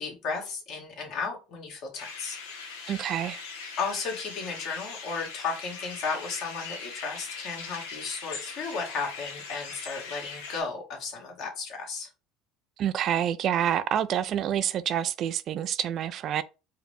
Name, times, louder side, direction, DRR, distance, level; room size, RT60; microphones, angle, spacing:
voice 1, 0.0-2.4 2.7-3.0 3.8-12.1, left 4 dB, 60° left, 1.6 m, -34 dB
sound 1, 2.0-10.6, left 5 dB, 90° left, 0.9 m, -40 dB
voice 2, 2.9-3.4 12.8-16.4, right 10 dB, 55° right, 0.3 m, -27 dB
4.7 x 2.1 x 3.3 m
supercardioid pair, 85°, 0 cm